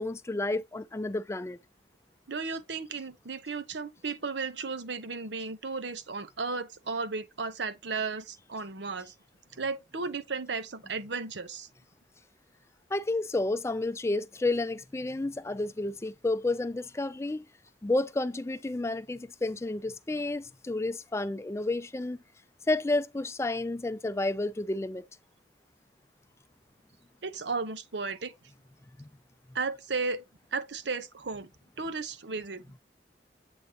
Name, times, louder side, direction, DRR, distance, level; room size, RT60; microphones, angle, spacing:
voice 1, 0.0-1.6 12.9-17.5 17.8-22.2 22.7-25.1 29.0-29.1, left 2 dB, 15° left, 0.4 m, -31 dB
voice 2, 2.3-9.1 9.5-11.7 27.2-28.3 29.5-30.2 30.5-31.5 31.8-32.6, right 4 dB, 90° right, 0.9 m, -34 dB
8.0 x 4.0 x 2.9 m
head